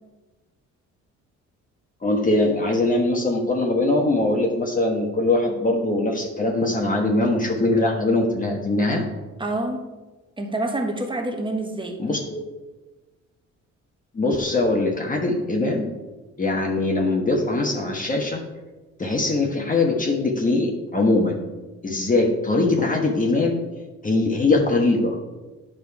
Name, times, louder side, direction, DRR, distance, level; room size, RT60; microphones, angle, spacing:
voice 1, 2.0-9.0 12.0-12.4 14.1-15.8 16.4-18.4 19.0-21.4 21.8-23.6 24.0-25.2, left 2 dB, 25° left, 0 dB, 1.3 m, -21 dB
voice 2, 9.4-9.9 10.4-12.0, right 2 dB, 15° right, 4 dB, 1.3 m, -27 dB
9.4 x 5.2 x 4.8 m, 1.2 s
cardioid pair, 90°, 30 cm